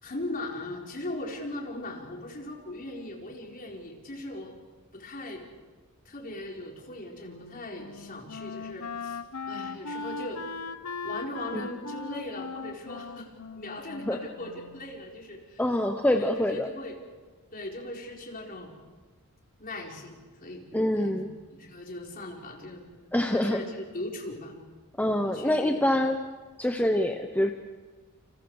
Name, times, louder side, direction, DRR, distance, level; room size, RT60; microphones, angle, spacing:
voice 1, 0.0-4.5 4.9-5.4 6.0-9.2 9.5-10.4 11.0-15.6 16.0-17.0 17.5-18.7 19.6-20.6 20.9-21.2 21.5-22.9 23.3-24.6 25.2-26.0, left 1 dB, 40° left, -1 dB, 4.5 m, -39 dB
Wind instrument woodwind instrument, 7.2-15.0, left 4 dB, 80° left, 1.1 m, -39 dB
voice 2, 15.6-16.7 20.7-21.3 23.1-23.6 25.0-26.2 26.6-27.5, left 1 dB, 10° left, 4 dB, 1.0 m, -25 dB
29.0 x 28.0 x 4.9 m, 1.3 s
head